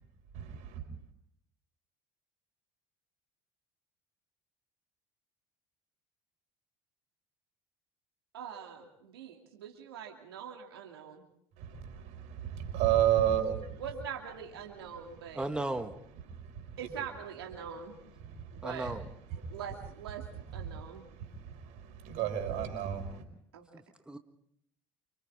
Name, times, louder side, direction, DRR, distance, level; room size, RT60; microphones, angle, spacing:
voice 1, 0.3-0.8 11.6-13.8 16.3-17.0 18.2-18.7 19.4-19.6 20.5-23.2, right 11 dB, 65° right, 5.2 m, -32 dB
voice 2, 8.3-11.2 13.8-15.5 16.8-18.0 18.6-18.9 19.5-21.0 23.5-23.7, right 7 dB, 90° right, 2.7 m, -43 dB
voice 3, 15.3-16.0 18.6-19.1 23.7-24.2, right 2 dB, 5° right, 1.6 m, -36 dB
28.5 x 25.5 x 3.6 m
hypercardioid pair, 70°, 12 cm